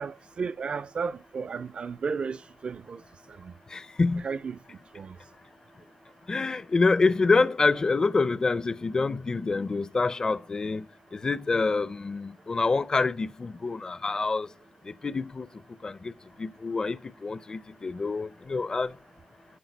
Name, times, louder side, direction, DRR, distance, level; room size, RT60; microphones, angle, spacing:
voice 1, 0.0-3.0 3.4-3.5 4.2-4.6 4.9-5.2, right 5 dB, 45° right, 0.4 m, -33 dB
voice 2, 3.7-4.2 6.3-10.8 11.1-14.5 15.0-15.5 15.8-16.1 16.4-17.0 17.2-18.9, left 3 dB, 30° left, 0.5 m, -26 dB
12.0 x 4.8 x 5.4 m
wide cardioid pair, 165°, 2 cm